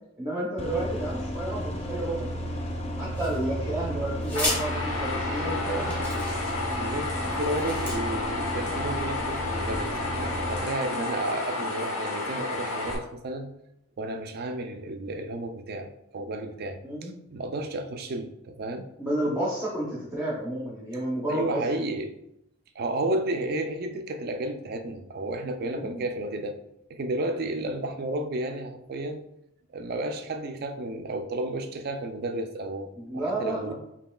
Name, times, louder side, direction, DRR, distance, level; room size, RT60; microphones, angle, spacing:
voice 1, 0.2-2.7 3.0-6.0 16.8-17.1 18.8-21.6 25.7-26.0 33.0-33.7, right 1 dB, 10° right, -6 dB, 0.6 m, -31 dB
sound 1, 0.6-10.6, equal, 30° left, 0.5 m, -33 dB
sound 2, 3.1-3.7 4.2-4.6 5.4-5.5 5.9-6.7 7.3-8.0, left 1 dB, 10° left, 1.1 m, -33 dB
sound 3, 4.3-12.9, left 2 dB, 85° left, 1.0 m, -31 dB
voice 2, 6.8-13.5 14.0-18.9 21.3-22.2 22.8-26.6 26.9-29.3 29.7-33.7, right 2 dB, 45° right, 6 dB, 0.4 m, -32 dB
5.2 x 2.7 x 2.3 m, 0.81 s
head